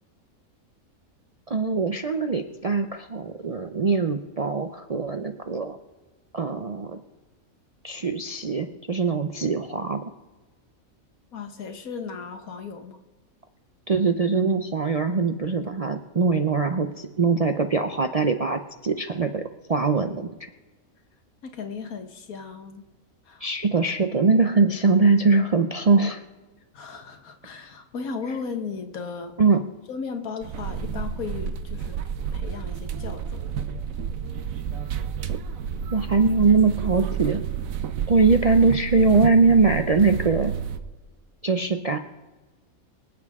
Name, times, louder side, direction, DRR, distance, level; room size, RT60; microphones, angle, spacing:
voice 1, 1.5-5.8 6.3-7.0 7.8-10.0 13.9-19.4 19.7-20.3 23.4-26.2 29.4-29.6 35.3-35.4 35.9-37.4 38.1-40.6 41.4-42.0, right 4 dB, 50° right, 5 dB, 0.4 m, -22 dB
voice 2, 11.3-13.0 15.1-15.6 21.4-22.8 23.3-23.5 26.7-29.3 29.9-32.0 32.3-33.5, left 5 dB, 80° left, 6 dB, 1.7 m, -36 dB
sound 1, 30.4-40.8, right 8 dB, 70° right, 1.2 m, -30 dB
25.0 x 8.5 x 3.6 m, 1.3 s
omnidirectional pair, 1.5 m